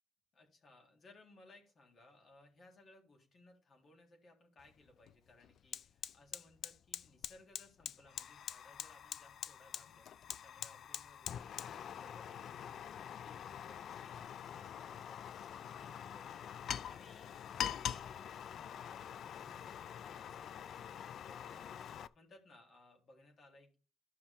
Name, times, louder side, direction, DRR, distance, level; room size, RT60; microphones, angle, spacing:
voice 1, 0.3-12.6 12.9-16.5 16.9-20.8 21.3-23.8, left 2 dB, 50° left, 1 dB, 3.7 m, -63 dB
Fire, 4.6-4.7 5.1-22.1, left 9 dB, 65° left, 0.4 m, -45 dB
13.5 x 5.7 x 3.6 m, 0.33 s
cardioid pair, 90°, 0 cm